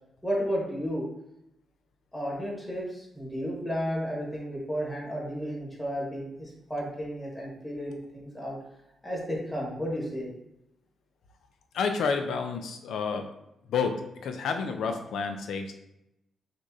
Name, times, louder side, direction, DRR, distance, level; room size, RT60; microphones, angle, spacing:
voice 1, 0.2-1.0 2.1-8.6 9.0-10.3, equal, 10° left, -4 dB, 1.4 m, -33 dB
voice 2, 11.7-13.3 13.7-15.7, left 5 dB, 85° left, 5 dB, 0.5 m, -30 dB
6.3 x 2.5 x 2.7 m, 0.84 s
wide cardioid pair, 145°, 0 cm